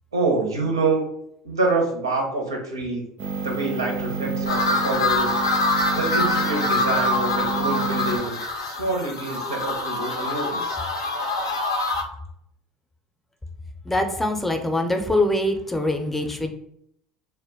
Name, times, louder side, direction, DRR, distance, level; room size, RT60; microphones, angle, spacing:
voice 1, 0.1-1.1 1.4-3.0 3.4-5.3 6.0-10.8, right 3 dB, 85° right, 1 dB, 0.6 m, -26 dB
sound 1, 3.2-8.2, right 4 dB, 45° right, 0.4 m, -29 dB
sound 2, 4.5-12.0, left 2 dB, 85° left, 0.4 m, -25 dB
voice 2, 13.9-16.5, left 1 dB, 10° left, 5 dB, 0.5 m, -23 dB
2.2 x 2.1 x 3.4 m, 0.74 s
hypercardioid pair, 70°, 2 cm